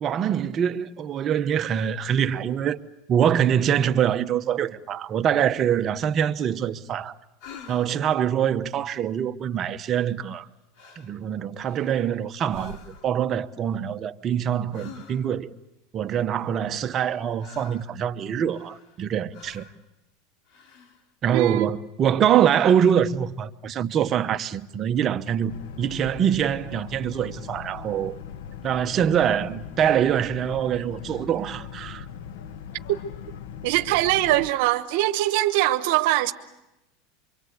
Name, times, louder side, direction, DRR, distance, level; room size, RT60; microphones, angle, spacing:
voice 1, 0.0-2.8 3.1-7.1 7.7-10.5 11.0-15.5 15.9-19.7 21.2-28.2 28.6-32.0, right 9 dB, 30° right, 1.0 m, -24 dB
sound 1, 7.4-8.1 10.2-10.5 10.7-11.2 11.6-12.1 12.5-13.2 14.7-15.5 16.6-17.9 18.5-19.0 19.3-19.8 20.5-21.0, left 6 dB, 60° left, 3.1 m, -47 dB
voice 2, 21.3-21.7 33.6-36.3, right 16 dB, 65° right, 1.1 m, -22 dB
Boat Water vehicle, 25.5-34.5, left 7 dB, 75° left, 1.3 m, -40 dB
26.0 x 24.5 x 8.1 m
supercardioid pair, 145°, 0 cm